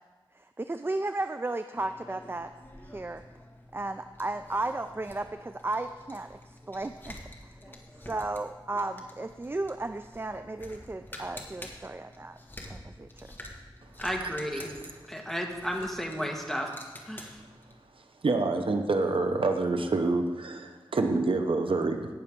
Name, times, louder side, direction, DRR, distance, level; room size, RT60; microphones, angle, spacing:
voice 1, 0.3-2.5 2.8-3.2 3.7-12.4 12.7-13.3, right 2 dB, 25° right, 9 dB, 0.4 m, -35 dB
sound 1, 1.8-17.8, left 1 dB, 20° left, 1.6 m, -48 dB
voice 2, 14.0-14.7 15.1-16.7 17.0-17.4, equal, 5° left, 1 dB, 1.6 m, -33 dB
voice 3, 18.2-22.1, right 3 dB, 75° right, 5 dB, 0.9 m, -27 dB
18.0 x 6.9 x 3.6 m, 1.3 s
wide cardioid pair, 75°, 9 cm